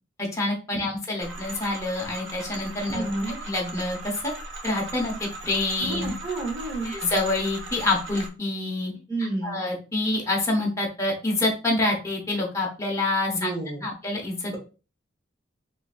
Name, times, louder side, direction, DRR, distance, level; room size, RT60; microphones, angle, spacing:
voice 1, 0.2-3.0 3.5-4.3 4.6-6.1 6.8-8.9 9.4-13.5 13.8-14.5, left 2 dB, 15° left, -2 dB, 0.8 m, -27 dB
sound 1, 1.2-8.3, right 2 dB, 75° right, 0.8 m, -38 dB
voice 2, 2.9-3.4 5.8-6.9 9.1-9.6 13.3-13.9 14.5-14.6, right 2 dB, 25° right, 0 dB, 1.1 m, -30 dB
3.7 x 2.6 x 2.4 m, 0.34 s
head